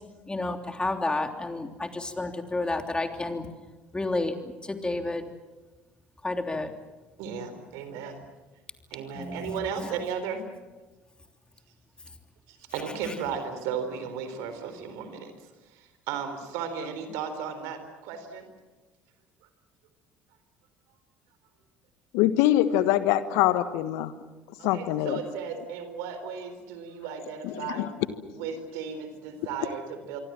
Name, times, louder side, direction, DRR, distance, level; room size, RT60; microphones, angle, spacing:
voice 1, 0.3-3.5 3.9-5.3 6.2-6.7 9.1-10.0, left 2 dB, 15° left, 6 dB, 3.2 m, -31 dB
voice 2, 7.2-8.2 8.9-10.4 12.5-15.3 15.7-18.5 24.6-27.9 28.4-30.2, right 6 dB, 70° right, 9 dB, 4.1 m, -35 dB
voice 3, 22.1-24.1 24.6-25.2 27.4-27.9, left 13 dB, 70° left, 13 dB, 1.4 m, -24 dB
26.0 x 24.0 x 7.6 m, 1.2 s
hypercardioid pair, 60°, 6 cm